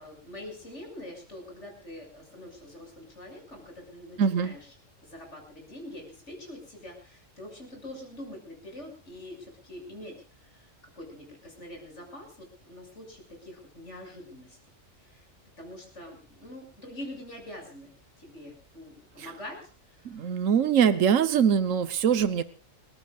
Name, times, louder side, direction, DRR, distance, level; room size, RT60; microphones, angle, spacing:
voice 1, 0.0-4.7 5.0-10.7 11.0-14.6 15.1-15.3 15.6-19.6 19.9-21.2, left 1 dB, 65° left, 2 dB, 6.9 m, -45 dB
voice 2, 4.2-4.5 20.0-22.4, right 8 dB, 80° right, 11 dB, 1.4 m, -23 dB
29.0 x 15.0 x 2.4 m, 0.35 s
omnidirectional pair, 1.3 m